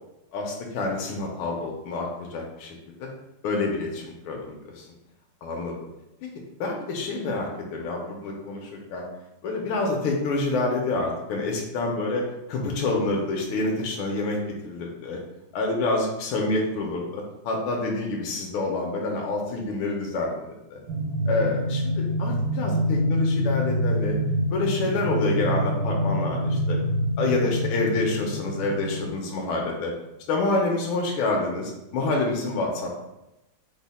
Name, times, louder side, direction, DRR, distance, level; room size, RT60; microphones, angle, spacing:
voice 1, 0.3-3.1 3.4-4.9 5.4-5.8 6.6-9.0 9.4-14.4 14.6-15.2 15.5-20.8 21.3-24.2 24.5-26.8 27.2-29.9 30.3-32.9, left 2 dB, 80° left, -1 dB, 1.5 m, -27 dB
sound 1, 20.9-29.1, equal, 70° right, 0.9 m, -26 dB
4.8 x 2.0 x 4.0 m, 0.94 s
omnidirectional pair, 2.3 m